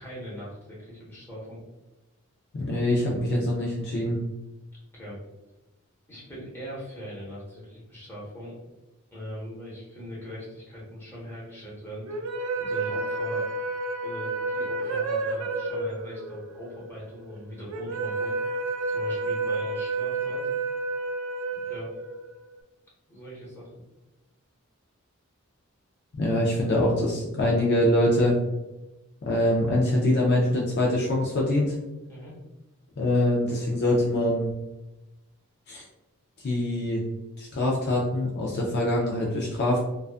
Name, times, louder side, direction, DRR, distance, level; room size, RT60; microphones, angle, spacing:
voice 1, 0.0-1.6 4.9-5.2 6.1-8.5 9.1-12.1 12.6-13.5 14.0-18.3 18.9-20.5 21.5-21.9 23.1-23.8 32.1-32.3, equal, 10° left, -7 dB, 0.9 m, -40 dB
voice 2, 2.5-4.2 26.2-28.4 29.2-31.8 33.0-34.5 35.7-35.9 36.4-37.0 37.4-39.8, left 1 dB, 50° left, -3 dB, 0.4 m, -24 dB
sound 1, 12.1-22.5, right 3 dB, 65° right, 0.4 m, -30 dB
2.4 x 2.3 x 2.4 m, 1.0 s
head